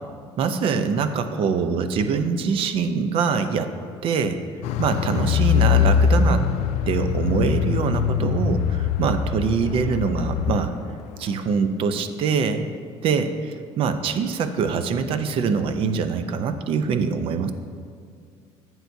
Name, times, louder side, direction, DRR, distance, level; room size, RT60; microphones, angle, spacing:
voice 1, 0.4-3.7 4.0-4.4 4.8-6.5 6.9-10.7 11.2-12.7 13.0-17.5, right 5 dB, 50° right, 10 dB, 0.6 m, -24 dB
Car, 4.6-10.8 11.1-11.2, left 7 dB, 75° left, 0.4 m, -22 dB
11.5 x 7.9 x 2.7 m, 2.2 s
cardioid pair, 135°, 11 cm